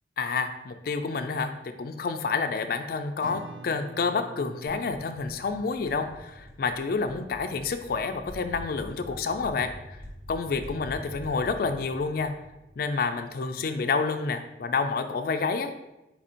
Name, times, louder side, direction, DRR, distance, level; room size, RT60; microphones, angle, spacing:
voice 1, 0.2-1.5 1.8-9.7 10.3-12.3 12.8-15.9, left 4 dB, 50° left, 8 dB, 0.3 m, -29 dB
Acoustic guitar / Strum, 3.2-8.6, right 2 dB, 70° right, 0.4 m, -48 dB
sound 1, 4.8-13.3, equal, 15° right, 1.1 m, -45 dB
4.2 x 2.5 x 4.2 m, 0.97 s
head